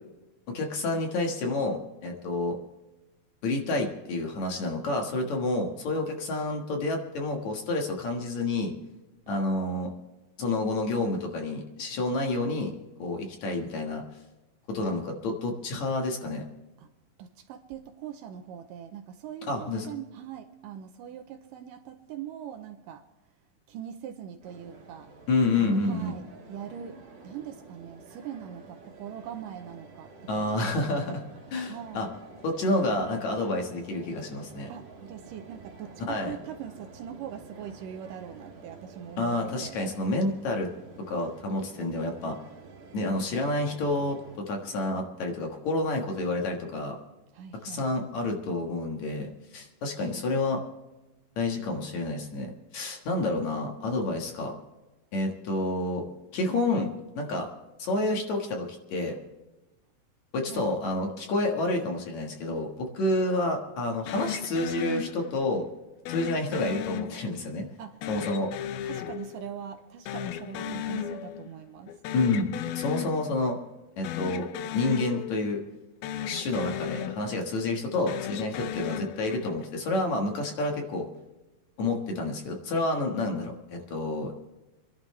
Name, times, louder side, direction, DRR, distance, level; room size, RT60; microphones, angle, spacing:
voice 1, 0.5-2.6 3.4-8.7 9.3-9.9 10.4-12.7 13.0-14.0 14.7-16.4 19.5-19.9 25.3-26.2 30.3-31.2 31.5-32.1 32.4-34.7 36.1-36.3 39.2-40.7 41.1-42.4 42.9-47.0 47.6-50.6 51.4-54.6 55.1-56.0 56.3-56.9 57.2-57.5 57.8-59.2 60.3-65.7 66.1-67.7 68.1-68.5 72.1-73.6 74.0-74.5 74.7-75.6 76.3-81.1 81.8-84.5, left 2 dB, 55° left, 2 dB, 2.6 m, -29 dB
voice 2, 17.2-23.1 23.7-25.1 25.5-31.4 31.7-32.1 34.7-39.8 47.3-47.9 60.5-60.7 67.8-68.0 68.8-72.0, right 9 dB, 75° right, 6 dB, 2.2 m, -42 dB
sound 1, 24.4-44.4, right 3 dB, 55° right, 3.8 m, -50 dB
sound 2, 64.1-65.6 66.1-67.6 68.0-69.8 70.1-71.6 71.9-73.6 74.0-75.8 76.0-77.6 78.0-79.7, left 10 dB, 85° left, 2.7 m, -36 dB
27.5 x 11.5 x 3.2 m, 1.1 s
omnidirectional pair, 4.3 m